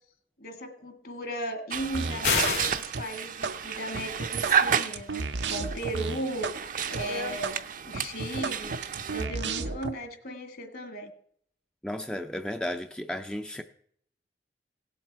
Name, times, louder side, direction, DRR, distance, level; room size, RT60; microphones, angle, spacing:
voice 1, 0.4-11.1, equal, 60° left, 1.9 m, -36 dB
sound 1, 1.7-9.3, right 7 dB, 50° right, 0.6 m, -32 dB
sound 2, 1.9-2.6 2.8-3.6 3.9-6.6 6.8-7.0 7.4-7.6 7.9-9.9, right 4 dB, 90° right, 0.8 m, -33 dB
sound 3, 2.2-2.8, left 5 dB, 80° left, 2.5 m, -26 dB
voice 2, 11.8-13.6, left 1 dB, 5° left, 0.4 m, -34 dB
17.0 x 7.7 x 4.6 m
head